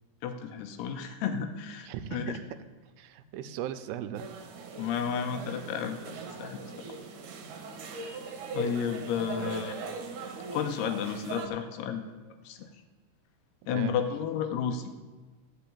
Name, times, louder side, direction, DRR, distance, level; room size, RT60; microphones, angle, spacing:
voice 1, 0.2-2.4 4.8-6.6 8.0-8.2 8.5-9.7 10.5-12.0 12.4-12.7 13.7-14.9, left 7 dB, 85° left, 7 dB, 2.8 m, -32 dB
voice 2, 1.8-2.4 3.0-4.3 9.4-9.7 13.7-14.0, right 10 dB, 85° right, 10 dB, 2.7 m, -38 dB
sound 1, 4.1-11.5, right 3 dB, 65° right, 2.3 m, -40 dB
14.5 x 5.8 x 8.5 m, 1.3 s
omnidirectional pair, 4.6 m